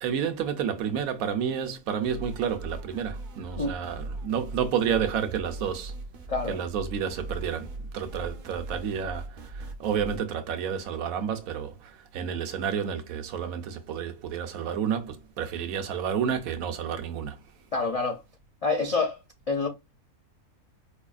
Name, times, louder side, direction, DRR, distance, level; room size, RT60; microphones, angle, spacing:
voice 1, 0.0-5.9 6.5-17.4, right 8 dB, 80° right, 1.1 m, -30 dB
sound 1, 2.0-10.2, right 2 dB, 55° right, 0.5 m, -39 dB
voice 2, 17.7-18.2 18.6-19.2 19.5-19.7, left 3 dB, 65° left, 0.3 m, -27 dB
4.8 x 2.3 x 2.4 m
omnidirectional pair, 1.5 m